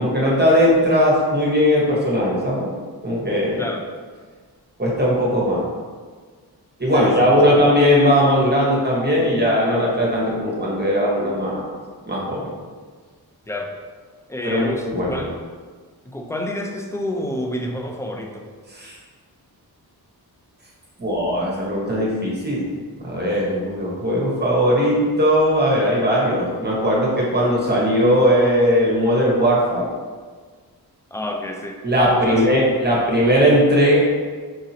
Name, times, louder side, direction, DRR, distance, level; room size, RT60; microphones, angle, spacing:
voice 1, 0.0-2.7 3.0-3.6 4.8-5.7 6.8-11.7 12.1-12.5 14.4-15.2 18.7-18.9 21.0-22.7 23.0-29.8 31.8-34.0, equal, 25° right, -4 dB, 1.1 m, -18 dB
voice 2, 6.9-7.6 13.5-13.8 14.3-15.4 16.0-18.5 31.1-31.8 32.1-32.6, left 1 dB, 5° left, 2 dB, 0.4 m, -29 dB
4.9 x 2.8 x 2.8 m, 1.6 s
wide cardioid pair, 70°, 40 cm